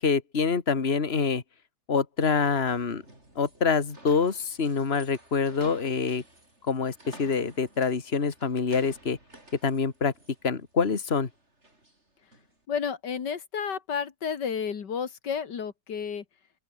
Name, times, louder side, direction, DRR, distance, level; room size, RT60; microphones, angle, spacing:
voice 1, 0.0-1.4 1.9-3.0 3.4-6.2 6.7-9.2 9.6-10.1 10.4-11.3, left 5 dB, 35° left, 2.2 m, -26 dB
sound 1, 2.2-12.6, right 1 dB, 40° right, 7.6 m, -53 dB
voice 2, 12.7-16.2, left 7 dB, 85° left, 2.4 m, -31 dB
open air
omnidirectional pair, 1.8 m